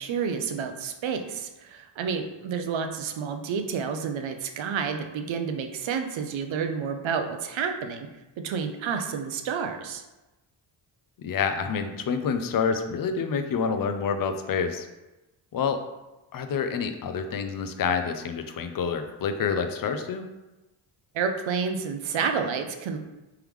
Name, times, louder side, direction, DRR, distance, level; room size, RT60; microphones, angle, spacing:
voice 1, 0.0-8.1 8.4-10.0 21.1-23.0, right 6 dB, 65° right, 6 dB, 0.6 m, -30 dB
voice 2, 11.2-14.9 15.5-15.8 16.3-20.3, left 6 dB, 45° left, 8 dB, 0.5 m, -28 dB
3.6 x 3.4 x 3.1 m, 1.0 s
cardioid pair, 85°, 50 cm